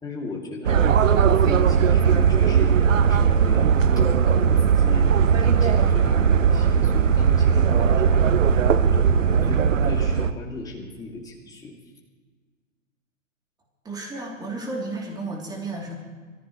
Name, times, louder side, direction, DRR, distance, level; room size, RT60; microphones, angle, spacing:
voice 1, 0.0-2.8 3.1-5.1 5.4-8.2 8.8-11.7, left 3 dB, 10° left, -2 dB, 2.7 m, -36 dB
sound 1, 0.6-10.3, right 7 dB, 70° right, 0.9 m, -18 dB
voice 2, 13.8-15.9, right 2 dB, 10° right, -1 dB, 3.1 m, -32 dB
24.5 x 14.5 x 3.2 m, 1.5 s
figure-of-eight pair, 115°, 40 cm